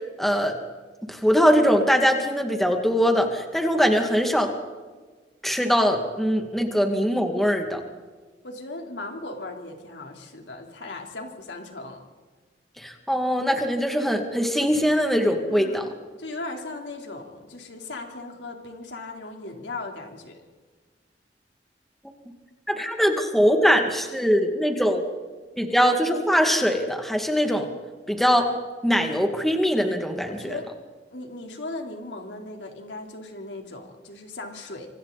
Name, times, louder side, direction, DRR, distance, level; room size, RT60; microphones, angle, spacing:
voice 1, 0.2-0.5 1.1-4.5 5.4-7.8 12.8-15.9 22.7-25.0 25.6-27.7 28.1-28.5 28.8-30.5, equal, ahead, 3 dB, 2.3 m, -22 dB
voice 2, 8.4-12.0 15.5-15.9 16.2-20.4 30.3-30.7 31.1-34.9, left 2 dB, 90° left, 2 dB, 4.0 m, -37 dB
26.5 x 26.0 x 4.2 m, 1.3 s
head